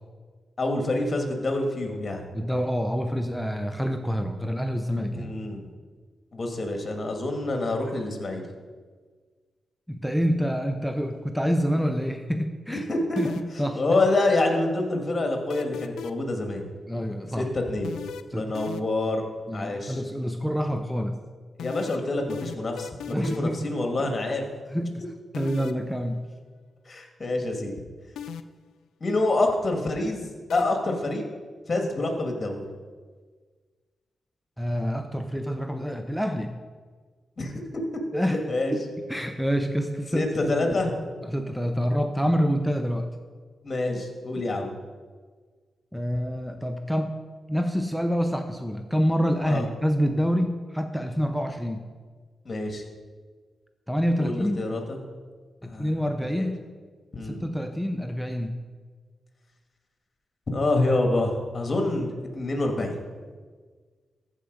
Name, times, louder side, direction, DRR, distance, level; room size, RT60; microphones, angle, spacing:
voice 1, 0.6-2.3 5.1-5.6 6.3-8.4 12.7-13.3 13.8-16.6 17.4-18.0 18.3-19.2 19.5-20.0 21.6-24.5 26.9-27.7 29.0-31.2 31.7-32.7 37.4-37.5 38.3-38.8 40.1-40.9 43.6-44.7 49.5-49.7 52.5-52.8 54.2-55.0 55.6-55.9 56.3-56.5 57.1-57.5 60.5-63.0, left 2 dB, 40° left, 3 dB, 2.0 m, -27 dB
voice 2, 2.3-5.3 9.9-12.9 13.2-13.3 13.6-14.0 16.9-17.5 18.3-18.5 19.5-21.2 23.1-23.7 24.7-25.0 25.3-26.3 34.6-36.6 38.1-38.4 38.7-38.8 39.1-40.3 40.6-40.8 41.2-43.1 45.9-47.1 47.5-51.8 53.9-54.6 55.6-56.6 57.2-58.6, equal, ahead, 6 dB, 0.7 m, -27 dB
sound 1, 13.2-13.7 15.5-16.3 17.8-19.1 21.6-23.6 25.3-25.8 28.2-28.7 30.5-30.6, left 8 dB, 85° left, 0.4 m, -37 dB
14.5 x 5.0 x 5.3 m, 1.5 s
cardioid pair, 55°, 0 cm